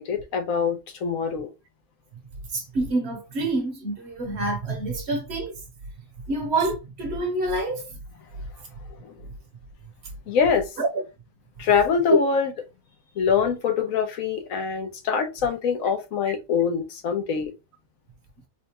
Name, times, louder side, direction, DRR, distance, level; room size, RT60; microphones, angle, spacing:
voice 1, 0.0-1.5 9.0-9.1 10.3-10.7 11.6-12.5 13.2-17.5, left 6 dB, 80° left, 1.2 m, -24 dB
voice 2, 2.5-5.5 6.3-7.9 10.8-10.9 12.1-12.2, right 1 dB, 55° right, 1.1 m, -26 dB
4.3 x 2.3 x 2.9 m
omnidirectional pair, 1.4 m